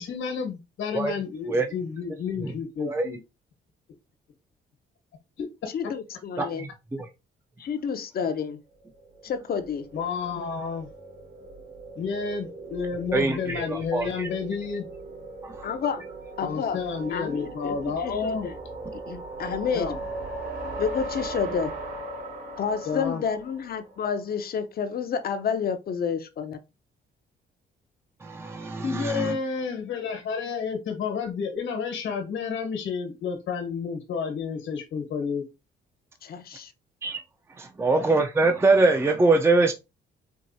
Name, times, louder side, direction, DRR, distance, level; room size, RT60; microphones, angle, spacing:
voice 1, 0.0-3.2 5.4-5.5 9.9-10.9 11.9-14.9 16.4-18.5 19.7-20.0 22.8-23.2 28.8-35.4 37.9-38.0, left 5 dB, 75° left, 1.3 m, -30 dB
voice 2, 5.7-6.7 7.6-8.6 9.2-9.9 15.6-16.0 16.4-16.8 17.1-18.6 18.9-19.9 20.8-21.7 22.6-26.6 36.2-36.7, left 6 dB, 50° left, 0.7 m, -30 dB
voice 3, 6.4-6.7 13.1-14.3 15.4-15.7 28.2-29.4 37.0-37.2 37.6-39.7, right 3 dB, 15° right, 0.5 m, -23 dB
sound 1, 9.0-24.2, right 2 dB, 65° right, 2.3 m, -39 dB
4.7 x 2.6 x 2.6 m
cardioid pair, 90°, 20 cm